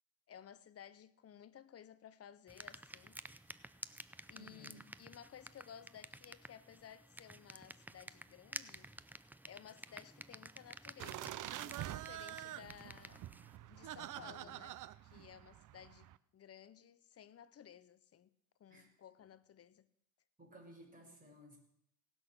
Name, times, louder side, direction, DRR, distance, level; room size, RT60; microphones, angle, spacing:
voice 1, 0.3-3.2 4.3-8.9 9.5-13.2 13.6-14.8 15.0-18.3 18.6-19.9, left 9 dB, 40° left, 0.7 m, -57 dB
sound 1, 2.5-13.6, right 1 dB, 5° right, 0.4 m, -52 dB
voice 2, 4.3-4.8 13.9-14.7 18.7-18.9 20.4-21.6, equal, 20° right, 5.6 m, -58 dB
sound 2, 11.0-16.2, right 13 dB, 55° right, 0.6 m, -47 dB
17.5 x 6.3 x 6.5 m
supercardioid pair, 85°, 39 cm